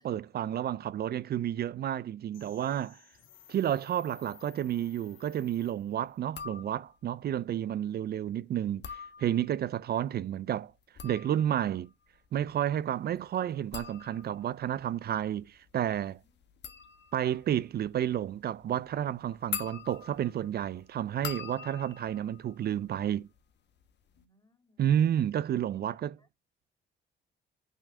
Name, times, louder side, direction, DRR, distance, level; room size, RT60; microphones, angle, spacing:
voice 1, 0.0-3.0 3.5-10.7 11.0-11.9 12.3-16.2 17.1-23.3 24.8-26.1, right 10 dB, 55° right, 0.4 m, -31 dB
sound 1, 2.3-6.2, left 11 dB, 85° left, 1.6 m, -57 dB
sound 2, 6.2-7.1 8.6-9.7 10.7-23.4 23.7-24.2, left 8 dB, 60° left, 1.2 m, -45 dB
voice 2, 8.2-8.7 16.2-16.4 24.1-24.9 25.7-26.3, left 2 dB, 20° left, 2.7 m, -67 dB
9.0 x 3.3 x 6.0 m
cardioid pair, 90°, 20 cm